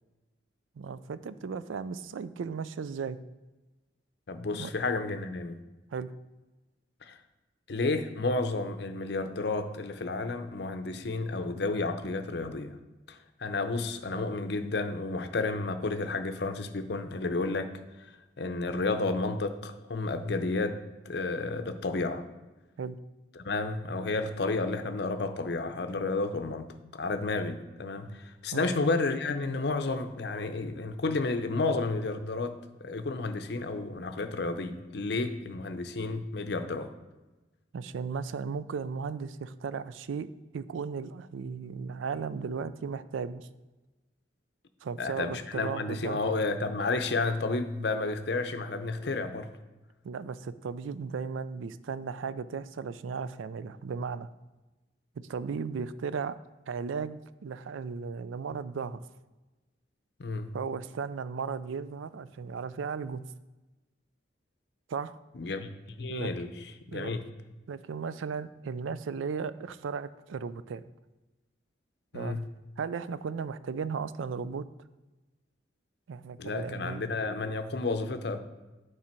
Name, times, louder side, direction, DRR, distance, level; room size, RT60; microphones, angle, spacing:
voice 1, 0.8-3.2 4.5-4.7 5.9-6.1 22.8-23.0 28.5-28.7 37.7-40.3 40.5-43.5 44.8-46.2 50.0-54.3 55.2-56.4 56.7-59.0 60.5-63.3 64.9-65.2 66.1-66.3 66.9-67.2 67.7-70.8 72.1-72.4 72.8-74.7 76.1-77.0, right 5 dB, 90° right, 15 dB, 0.4 m, -36 dB
voice 2, 4.3-5.6 7.0-7.2 7.7-12.8 13.1-17.7 18.0-20.8 21.1-22.2 23.4-36.9 45.0-49.5 60.2-60.5 65.3-65.7 66.0-67.2 72.1-72.5 76.4-78.4, left 3 dB, 60° left, 8 dB, 0.6 m, -31 dB
8.6 x 4.9 x 4.4 m, 1.1 s
head